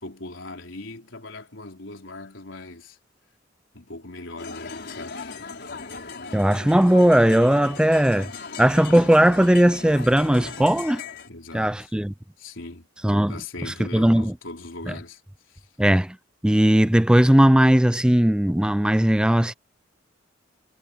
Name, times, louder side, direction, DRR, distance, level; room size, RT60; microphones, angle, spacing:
voice 1, 0.0-3.0 3.7-5.4 11.3-11.9 12.4-12.9 13.3-15.2 15.5-15.7, left 2 dB, 75° left, 3.8 m, -40 dB
sound 1, 4.4-11.3, left 4 dB, 60° left, 4.7 m, -38 dB
voice 2, 6.3-8.3 8.6-11.0 11.5-12.1 13.0-13.4 13.7-14.3 15.8-16.2 16.4-19.5, right 1 dB, 5° right, 0.4 m, -18 dB
head